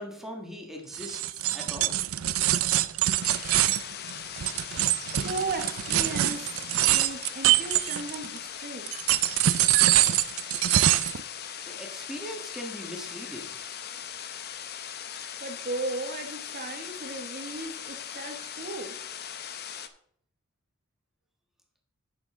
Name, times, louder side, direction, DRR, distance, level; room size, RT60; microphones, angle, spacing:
voice 1, 0.0-2.0 11.6-13.6, equal, ahead, 0 dB, 1.5 m, -40 dB
sound 1, 0.9-8.4 8.9-11.2, right 13 dB, 75° right, 0.5 m, -24 dB
sound 2, 3.2-19.9, left 8 dB, 50° left, 0.7 m, -39 dB
voice 2, 5.2-8.9 15.4-19.0, right 2 dB, 45° right, 6 dB, 1.0 m, -36 dB
10.0 x 7.0 x 3.7 m, 0.65 s
head